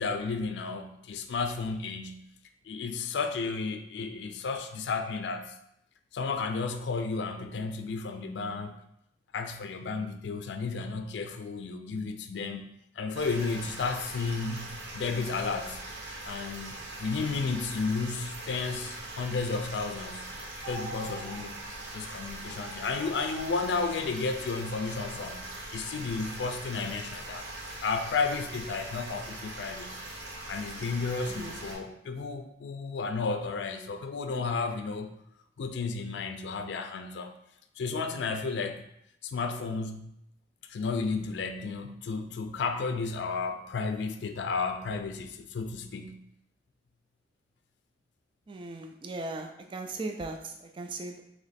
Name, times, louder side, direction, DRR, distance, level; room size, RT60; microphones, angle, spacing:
voice 1, 0.0-2.2 2.6-5.5 6.1-8.8 9.3-12.7 13.0-15.8 16.3-20.3 20.7-21.6 21.9-25.5 25.7-27.5 27.8-30.0 30.5-35.1 35.6-37.3 37.8-38.8 39.2-40.1 40.7-46.2, left 4 dB, 70° left, 7 dB, 0.4 m, -33 dB
sound 1, 13.1-31.8, right 2 dB, 90° right, 0.8 m, -41 dB
sound 2, 20.6-21.4 21.8-21.9 22.5-23.4, right 2 dB, 5° right, 0.7 m, -44 dB
voice 2, 31.3-31.6 48.5-51.2, right 2 dB, 30° right, 4 dB, 0.3 m, -38 dB
3.1 x 3.0 x 4.1 m, 0.76 s
head